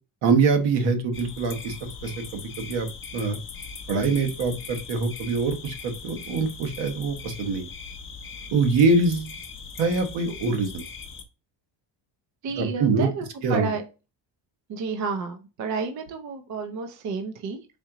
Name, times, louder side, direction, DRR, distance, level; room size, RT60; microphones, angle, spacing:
voice 1, 0.2-1.8 2.0-2.9 3.1-3.4 3.9-7.7 8.5-9.3 9.8-10.8 12.6-13.1 13.4-13.7, right 4 dB, 70° right, 5 dB, 1.2 m, -24 dB
sound 1, 1.1-11.2, left 5 dB, 30° left, 0.6 m, -40 dB
voice 2, 12.4-13.9 14.7-17.7, right 5 dB, 40° right, 5 dB, 0.5 m, -31 dB
4.3 x 3.7 x 2.9 m, 0.30 s
cardioid pair, 180°, 46 cm